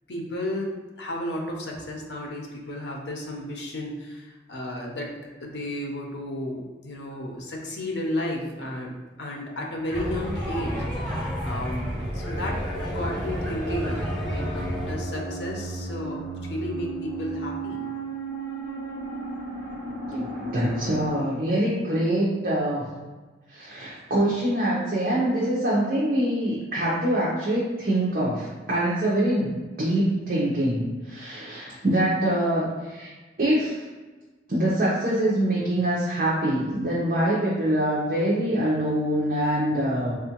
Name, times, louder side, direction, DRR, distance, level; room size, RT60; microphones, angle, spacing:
voice 1, 0.1-14.5 14.9-17.8, left 1 dB, 75° left, 0 dB, 0.7 m, -33 dB
sound 1, 9.9-14.9, equal, 5° left, 0.7 m, -31 dB
Fearsome Ambience, 11.8-21.1, right 2 dB, 25° right, 1.1 m, -34 dB
voice 2, 20.5-22.8 23.5-33.1 33.4-33.8 34.5-40.2, right 1 dB, 50° right, -7 dB, 0.7 m, -24 dB
3.5 x 2.5 x 2.8 m, 1.3 s
head